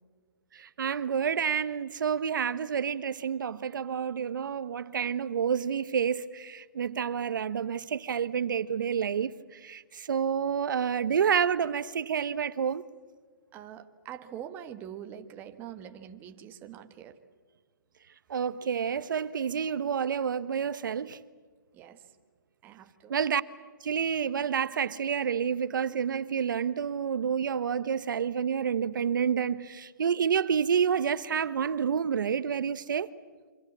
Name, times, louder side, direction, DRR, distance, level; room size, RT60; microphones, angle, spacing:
voice 1, 0.8-9.3 9.6-9.8 10.1-12.8 18.3-21.2 23.1-23.4 23.8-33.1, right 7 dB, 70° right, 1.0 m, -29 dB
voice 2, 13.5-17.2 21.7-22.0 22.6-23.2, right 9 dB, 15° right, 1.3 m, -44 dB
27.5 x 25.5 x 7.3 m
hypercardioid pair, 165°, 11 cm